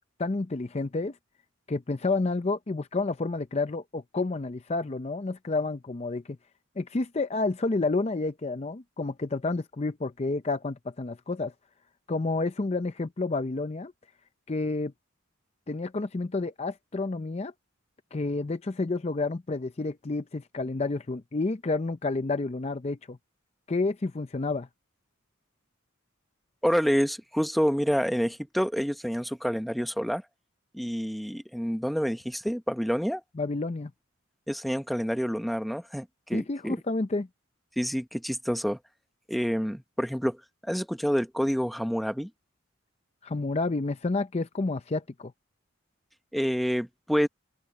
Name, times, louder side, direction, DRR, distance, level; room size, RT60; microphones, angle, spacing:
voice 1, 0.2-1.2 1.7-6.2 6.8-11.5 12.1-13.9 14.5-14.9 15.7-17.5 18.1-23.2 23.7-24.7 33.4-33.9 36.3-37.3 43.2-45.3, left 3 dB, 30° left, 0.5 m, -30 dB
voice 2, 26.6-30.2 30.7-33.2 34.5-36.8 37.8-38.8 39.3-42.3 46.3-47.3, equal, ahead, 0.9 m, -28 dB
open air
head